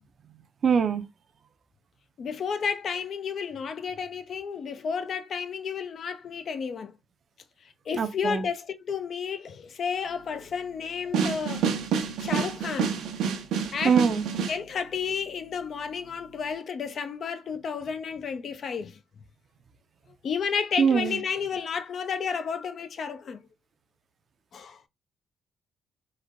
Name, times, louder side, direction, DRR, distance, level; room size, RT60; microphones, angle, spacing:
voice 1, 0.6-1.0 7.9-8.4 13.8-14.3 20.8-21.2, right 6 dB, 50° right, 0.5 m, -23 dB
voice 2, 2.2-7.0 7.9-11.7 12.2-13.0 13.7-14.0 14.5-19.0 20.2-23.4 24.5-24.8, left 6 dB, 55° left, 0.5 m, -32 dB
sound 1, 11.1-14.6, right 6 dB, 85° right, 0.7 m, -28 dB
3.2 x 2.1 x 3.6 m
cardioid pair, 90°, 0 cm